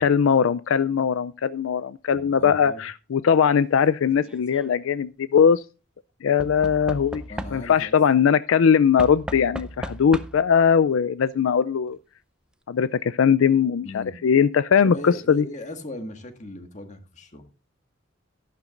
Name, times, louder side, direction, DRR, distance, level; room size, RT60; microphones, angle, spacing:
voice 1, 0.0-5.6 6.2-7.2 7.5-12.0 12.7-15.4, left 7 dB, 80° left, 0.4 m, -20 dB
voice 2, 2.1-2.8 7.3-7.9 13.8-14.2 14.8-17.5, left 1 dB, 40° left, 1.7 m, -38 dB
Knock / Wood, 4.2-4.7 6.4-7.9 9.0-10.6 11.6-11.7 11.9-12.0, equal, 5° right, 0.6 m, -36 dB
13.0 x 11.5 x 2.5 m
head